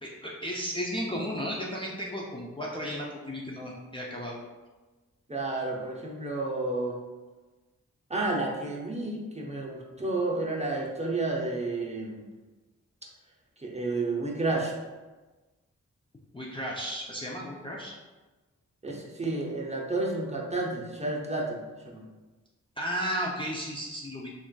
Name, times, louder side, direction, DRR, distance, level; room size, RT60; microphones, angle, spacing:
voice 1, 0.0-4.4 16.3-17.9 22.8-24.3, equal, 15° left, -4 dB, 0.5 m, -34 dB
voice 2, 5.3-7.0 8.1-12.2 13.6-14.7 18.8-21.6 21.8-22.0, right 2 dB, 20° right, -2 dB, 0.7 m, -31 dB
3.2 x 2.4 x 2.2 m, 1.2 s
cardioid pair, 40°, 32 cm